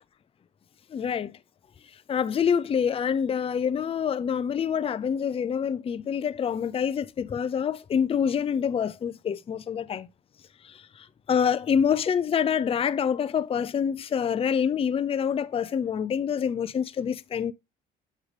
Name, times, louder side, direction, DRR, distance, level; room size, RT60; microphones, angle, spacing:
voice 1, 0.9-1.4 2.1-10.1 10.6-17.5, left 7 dB, 30° left, 0.4 m, -26 dB
6.6 x 6.1 x 3.2 m
cardioid pair, 95°, 19 cm